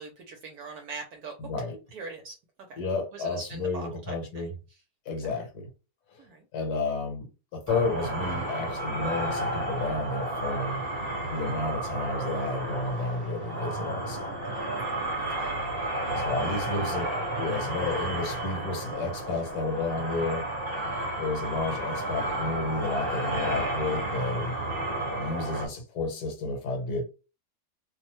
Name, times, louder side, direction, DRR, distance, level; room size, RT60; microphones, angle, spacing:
voice 1, 0.0-1.3 1.9-2.3 2.7-2.8 3.1-4.5 6.2-6.4 14.6-14.8 15.2-15.6 16.4-17.2 20.8-21.1, right 3 dB, 70° right, 1.0 m, -42 dB
voice 2, 1.4-1.8 2.8-4.5 5.0-5.7 6.1-6.2 6.5-10.8 11.3-14.4 16.2-20.5 21.2-24.5 25.1-27.0, left 3 dB, 65° left, 1.5 m, -31 dB
sound 1, 7.7-25.7, right 1 dB, 35° right, 1.4 m, -32 dB
3.1 x 2.1 x 2.9 m
omnidirectional pair, 1.8 m